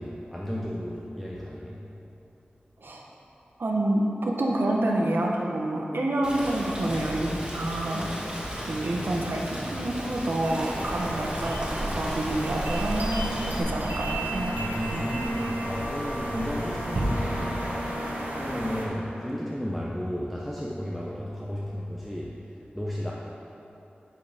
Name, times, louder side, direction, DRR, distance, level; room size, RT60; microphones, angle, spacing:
voice 1, 0.0-1.8 14.5-23.1, equal, 5° left, -5 dB, 0.7 m, -34 dB
voice 2, 3.6-8.1 8.7-14.5 14.9-15.0, right 1 dB, 80° right, -1 dB, 1.1 m, -28 dB
Rain, 6.2-13.6, equal, 25° right, 1.8 m, -36 dB
sound 1, 10.4-18.9, right 1 dB, 60° right, 1.4 m, -32 dB
Bowed string instrument, 13.9-19.6, equal, 75° left, 1.1 m, -37 dB
10.5 x 4.7 x 5.1 m, 2.9 s
wide cardioid pair, 80°, 3 cm